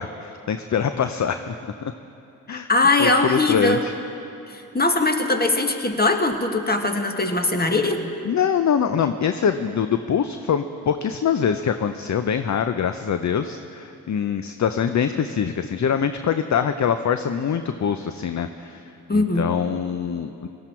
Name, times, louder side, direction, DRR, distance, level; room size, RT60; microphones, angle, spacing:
voice 1, 0.0-1.9 2.5-2.7 3.0-3.9 8.2-18.8 19.1-20.5, left 7 dB, 40° left, 9 dB, 0.7 m, -24 dB
voice 2, 2.7-3.8 4.5-8.0 19.1-19.4, left 2 dB, 20° left, 5 dB, 1.6 m, -21 dB
18.5 x 13.5 x 4.5 m, 2.7 s
supercardioid pair, 40°, 42 cm